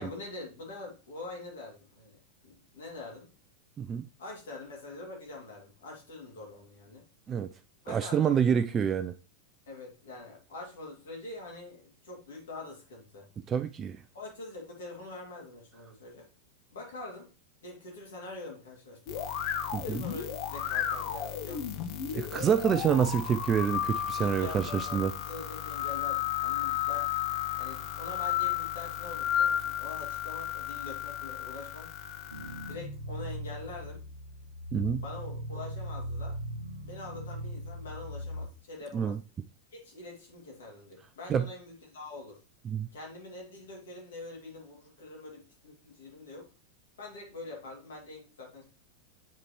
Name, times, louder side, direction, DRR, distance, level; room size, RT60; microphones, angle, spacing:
voice 1, 0.0-3.3 4.2-7.0 7.8-8.4 9.7-13.3 14.1-16.3 16.7-17.3 17.6-19.3 19.8-21.7 24.2-27.1 27.6-31.9 32.7-34.0 35.0-36.4 36.8-39.2 39.7-42.4 42.9-46.5 47.0-48.6, left 2 dB, 60° left, 2.7 m, -44 dB
voice 2, 7.9-9.1 13.5-14.0 19.7-20.0 22.1-25.1 34.7-35.0 38.9-39.2 41.3-41.4 42.7-42.9, right 8 dB, 25° right, 0.4 m, -27 dB
sound 1, 19.1-32.7, left 10 dB, 45° left, 0.8 m, -33 dB
sound 2, 32.3-38.5, equal, 80° right, 0.8 m, -39 dB
8.0 x 4.9 x 3.1 m
figure-of-eight pair, 90°, 0 cm